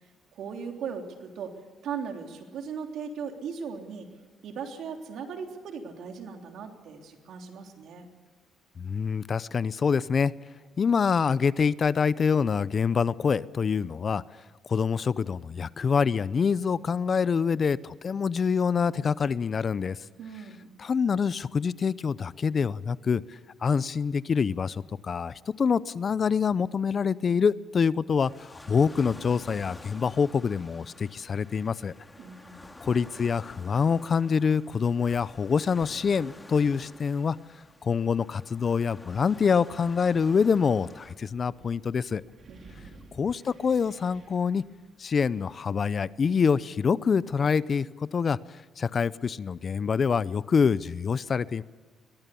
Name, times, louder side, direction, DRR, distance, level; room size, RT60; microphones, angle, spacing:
voice 1, 0.4-1.5 1.8-4.1 4.4-8.1 20.2-20.7 32.2-32.7 42.5-42.9, right 6 dB, 75° right, 3 dB, 3.3 m, -38 dB
voice 2, 8.8-10.3 10.8-14.2 14.7-20.0 20.8-31.9 32.9-37.4 37.8-42.2 43.1-44.6 45.0-48.4 48.8-51.6, left 6 dB, 40° left, 18 dB, 0.6 m, -26 dB
sound 1, 28.2-41.1, left 2 dB, 15° left, 2.2 m, -49 dB
Wind, 39.7-46.3, right 3 dB, 45° right, 4.9 m, -56 dB
22.5 x 18.5 x 7.0 m, 1.5 s
cardioid pair, 100°, 0 cm